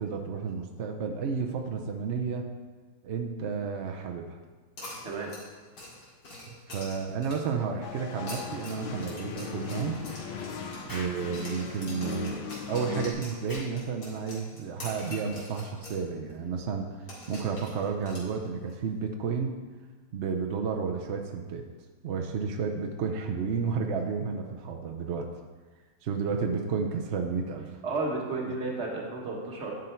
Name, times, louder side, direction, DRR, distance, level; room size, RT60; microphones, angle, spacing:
voice 1, 0.0-2.5 3.0-4.4 6.5-10.1 10.9-12.4 12.7-19.6 20.1-21.6 22.0-25.3 26.0-27.7 28.4-28.5, right 5 dB, 75° right, 3 dB, 0.6 m, -32 dB
sound 1, 4.8-7.6 8.1-11.1 11.3-16.0 16.3-16.4 17.1-18.7, left 2 dB, 65° left, 2.9 m, -45 dB
sound 2, 7.8-13.1, left 6 dB, 90° left, 1.6 m, -38 dB
Explosion, 10.9-11.2 13.5-13.8, left 1 dB, 15° left, 0.7 m, -41 dB
voice 2, 27.8-29.7, right 3 dB, 40° right, -1 dB, 1.4 m, -32 dB
10.0 x 5.3 x 4.4 m, 1.3 s
omnidirectional pair, 2.1 m